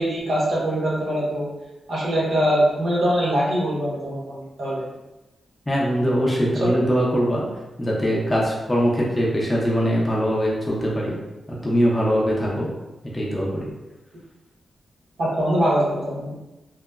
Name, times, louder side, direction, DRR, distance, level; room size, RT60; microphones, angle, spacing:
voice 1, 0.0-1.5 1.9-4.9 6.6-6.7 15.2-16.3, equal, 65° right, -6 dB, 1.0 m, -23 dB
voice 2, 5.7-7.5 7.8-11.2 11.5-12.7 13.1-13.7, equal, 15° left, -5 dB, 0.5 m, -22 dB
2.8 x 2.1 x 2.3 m, 1.0 s
wide cardioid pair, 135°, 0 cm